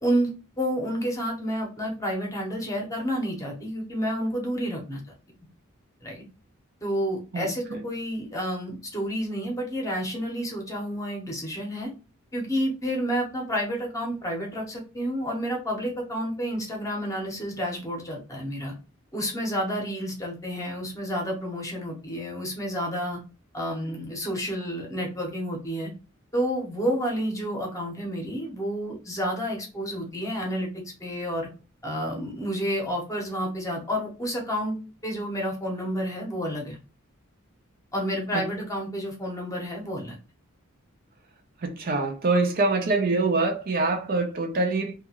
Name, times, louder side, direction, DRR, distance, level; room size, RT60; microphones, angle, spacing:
voice 1, 0.0-5.0 6.0-6.2 6.8-11.9 12.3-18.7 19.1-23.2 23.5-25.9 26.3-30.7 31.0-31.5 31.8-34.8 35.0-36.8 37.9-40.2, equal, 15° left, 0.9 m, -30 dB
voice 2, 7.3-7.8 38.3-38.4 41.6-44.9, right 3 dB, 45° right, 0.5 m, -25 dB
2.9 x 2.4 x 2.8 m
head